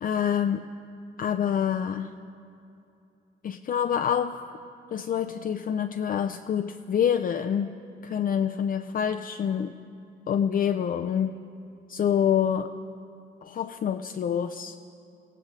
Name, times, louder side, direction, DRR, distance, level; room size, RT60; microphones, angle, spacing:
voice 1, 0.0-0.7 1.2-2.1 3.4-4.5 4.9-7.7 8.0-9.7 10.3-11.4 11.9-12.7 13.4-14.8, left 8 dB, 45° left, 6 dB, 0.5 m, -26 dB
21.5 x 16.5 x 3.2 m, 2.7 s
cardioid pair, 90°, 20 cm